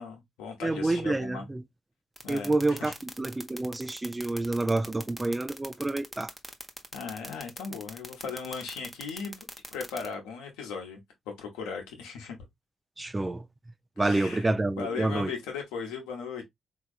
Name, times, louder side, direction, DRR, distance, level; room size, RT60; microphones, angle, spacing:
voice 1, 0.0-1.4 2.2-2.9 6.9-9.4 9.7-11.0 11.4-12.4 14.0-14.4 14.8-16.4, left 5 dB, 85° left, 1.0 m, -37 dB
voice 2, 0.6-1.6 2.3-6.3 13.0-13.4 14.0-15.3, right 2 dB, 20° right, 0.4 m, -28 dB
sound 1, 2.2-10.1, right 1 dB, 5° right, 0.9 m, -40 dB
3.4 x 2.9 x 2.4 m
hypercardioid pair, 45°, 0 cm